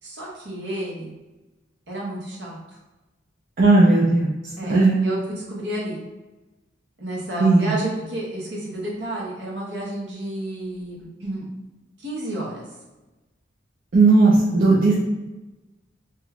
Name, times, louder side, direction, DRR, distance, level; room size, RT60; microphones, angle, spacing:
voice 1, 0.0-1.1 1.9-2.6 4.6-6.0 7.0-11.5 12.0-12.7, right 1 dB, 65° right, -4 dB, 1.0 m, -31 dB
voice 2, 3.6-4.3 4.7-5.0 7.4-7.7 13.9-14.9, right 3 dB, 45° right, -5 dB, 0.4 m, -16 dB
2.9 x 2.3 x 3.3 m, 1.1 s
head